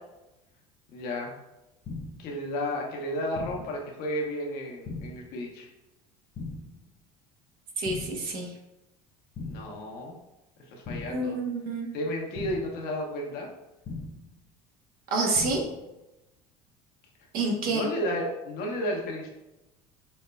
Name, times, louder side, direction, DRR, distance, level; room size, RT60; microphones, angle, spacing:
voice 1, 0.9-1.3 2.2-5.7 9.4-10.1 10.7-11.4 11.9-13.5 17.7-19.3, equal, 65° left, 0 dB, 0.9 m, -32 dB
sound 1, 1.8-2.3 3.3-3.8 4.8-5.3 6.3-6.8 7.8-8.3 9.3-9.8 10.8-11.3 12.3-12.8 13.8-14.3 15.3-15.8, left 3 dB, 40° left, 0.6 m, -39 dB
voice 2, 7.8-8.5 11.1-11.9 15.1-15.6 17.3-17.8, right 3 dB, 60° right, 1 dB, 0.9 m, -28 dB
5.3 x 2.1 x 2.2 m, 0.97 s
hypercardioid pair, 80°, 17 cm